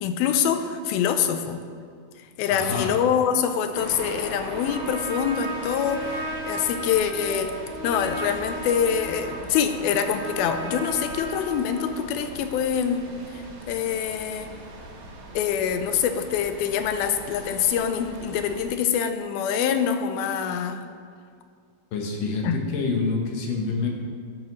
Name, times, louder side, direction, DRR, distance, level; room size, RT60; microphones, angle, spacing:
voice 1, 0.0-1.6 2.2-13.0 13.3-14.5 15.3-20.8 22.4-22.6, left 8 dB, 90° left, 8 dB, 2.5 m, -25 dB
voice 2, 2.5-2.9 21.9-23.9, left 4 dB, 70° left, 1 dB, 2.8 m, -27 dB
sound 1, 3.7-18.7, right 2 dB, 85° right, 3.6 m, -40 dB
Trumpet, 4.4-12.0, right 1 dB, 20° left, 1.6 m, -35 dB
13.5 x 11.5 x 3.1 m, 2.1 s
omnidirectional pair, 4.2 m